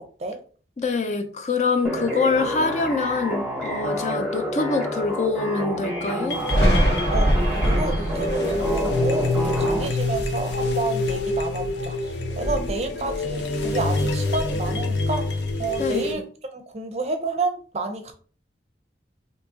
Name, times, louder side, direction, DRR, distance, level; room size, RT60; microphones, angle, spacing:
voice 1, 0.8-6.4 15.8-16.1, left 3 dB, 40° left, 6 dB, 0.4 m, -25 dB
sound 1, 1.8-9.8, equal, 5° right, 0.9 m, -29 dB
sound 2, 6.3-16.1, left 2 dB, 90° left, 0.6 m, -27 dB
Thunder, 6.5-11.9 12.3-13.7 14.0-15.7, equal, 70° left, 1.7 m, -26 dB
voice 2, 7.1-16.2 16.5-18.1, right 3 dB, 35° right, 6 dB, 0.5 m, -30 dB
2.8 x 2.7 x 3.6 m, 0.42 s
head